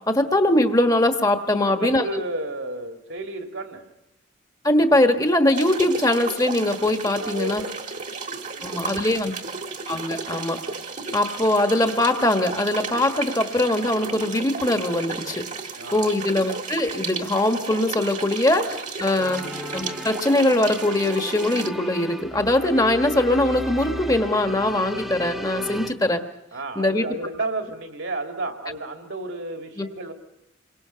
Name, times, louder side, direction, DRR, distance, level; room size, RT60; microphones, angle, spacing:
voice 1, 0.1-2.1 4.6-7.6 8.6-9.3 9.9-10.6 11.1-15.5 15.9-26.2 26.7-27.0 29.8-29.9, left 1 dB, 20° left, 6 dB, 1.3 m, -22 dB
voice 2, 1.6-3.9 7.2-8.0 8.6-9.3 15.8-16.1 18.7-19.3 26.5-30.1, right 2 dB, 70° right, 3 dB, 2.5 m, -33 dB
sound 1, 5.5-21.7, right 4 dB, 40° right, 1.5 m, -33 dB
sound 2, 19.2-25.9, equal, ahead, 1.2 m, -34 dB
28.0 x 23.5 x 5.7 m, 0.89 s
head